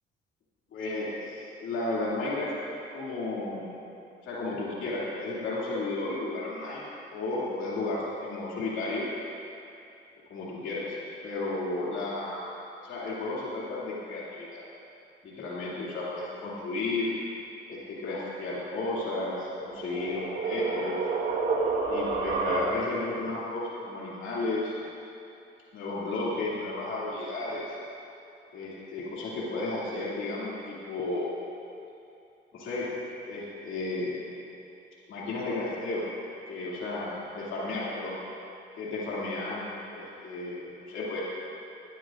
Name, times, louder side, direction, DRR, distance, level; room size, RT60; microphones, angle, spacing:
voice 1, 0.7-3.7 4.2-9.0 10.3-11.0 11.2-12.5 12.8-14.6 15.2-17.1 17.7-21.1 21.9-24.7 25.7-27.7 28.5-31.3 32.5-32.9 33.3-34.2 35.1-36.0 36.5-38.2 38.8-41.2, left 2 dB, 80° left, -7 dB, 2.5 m, -33 dB
sound 1, 19.3-23.1, right 4 dB, 70° right, 1.6 m, -30 dB
19.0 x 13.0 x 2.5 m, 2.7 s
cardioid pair, 90°, 20 cm